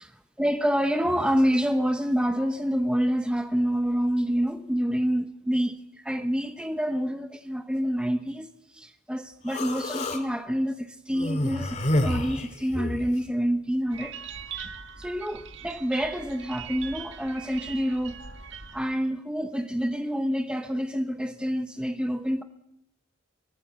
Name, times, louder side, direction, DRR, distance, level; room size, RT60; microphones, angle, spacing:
voice 1, 0.4-14.2 15.0-18.2 18.7-22.4, equal, 5° right, 0.9 m, -27 dB
Human voice, 9.5-10.2 11.1-13.1, left 1 dB, 35° left, 2.5 m, -28 dB
sound 1, 13.9-18.9, right 6 dB, 65° right, 1.6 m, -41 dB
24.0 x 19.0 x 7.9 m
head